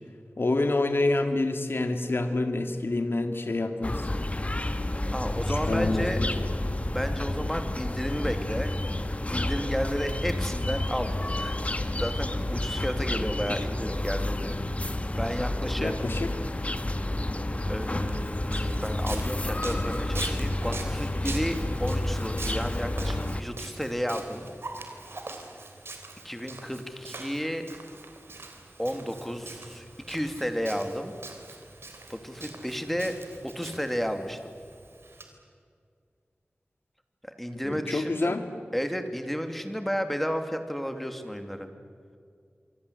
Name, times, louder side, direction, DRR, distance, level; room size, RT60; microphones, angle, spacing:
voice 1, 0.4-4.1 5.5-6.5 15.8-16.3 37.6-38.5, left 2 dB, 65° left, 7 dB, 2.1 m, -27 dB
sound 1, 3.8-23.4, left 1 dB, 35° left, 1.5 m, -30 dB
voice 2, 5.1-6.2 6.9-8.7 9.3-14.5 15.2-15.9 17.7-24.5 26.2-27.6 28.8-31.1 32.1-33.2 33.4-34.5 37.2-38.4 38.7-41.7, equal, 5° left, 7 dB, 2.8 m, -32 dB
Walk footsteps, 17.8-35.2, right 2 dB, 75° right, 3.5 m, -43 dB
27.0 x 24.5 x 8.3 m, 2.2 s
wide cardioid pair, 70°, 4 cm